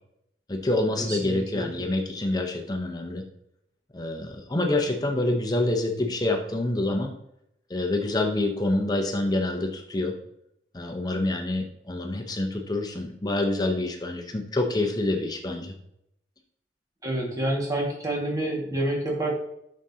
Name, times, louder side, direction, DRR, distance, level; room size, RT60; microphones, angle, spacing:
voice 1, 0.5-3.2 3.9-7.1 7.7-10.1 10.7-15.8, left 2 dB, 20° left, 3 dB, 0.8 m, -27 dB
voice 2, 1.1-1.8 17.0-19.3, right 1 dB, 20° right, -2 dB, 1.8 m, -28 dB
9.2 x 6.3 x 2.8 m, 0.76 s
head